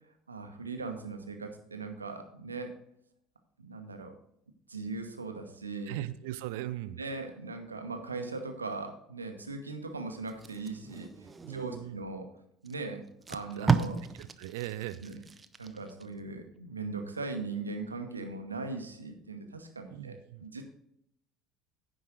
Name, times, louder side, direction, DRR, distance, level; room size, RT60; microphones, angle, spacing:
voice 1, 0.3-2.7 3.6-4.1 4.7-5.9 7.0-12.3 12.6-14.0 15.0-15.2 15.6-20.6, right 3 dB, 85° right, 6 dB, 1.0 m, -39 dB
voice 2, 5.9-7.0 11.4-12.0 13.6-13.8 14.1-15.0 19.9-20.5, right 14 dB, 65° right, 15 dB, 0.5 m, -39 dB
Packing tape duct tape, 10.3-11.9 12.6-12.7 13.1-16.1 16.5-16.7, right 5 dB, 20° right, 0.7 m, -33 dB
10.0 x 5.3 x 6.2 m, 0.73 s
figure-of-eight pair, 65°, 0 cm